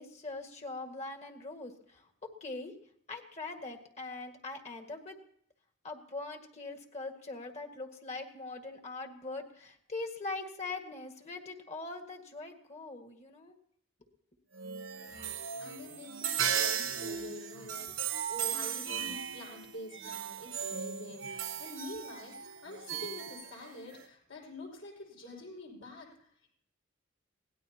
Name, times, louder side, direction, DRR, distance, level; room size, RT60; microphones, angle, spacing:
voice 1, 0.0-2.1 2.4-2.7 3.1-5.2 5.8-13.6, left 3 dB, 35° left, 5 dB, 1.9 m, -42 dB
sound 1, 14.5-24.1, right 8 dB, 65° right, 1.1 m, -36 dB
voice 2, 14.9-15.3 15.6-26.5, left 1 dB, 70° left, -1 dB, 6.0 m, -47 dB
23.0 x 18.0 x 2.9 m, 0.66 s
head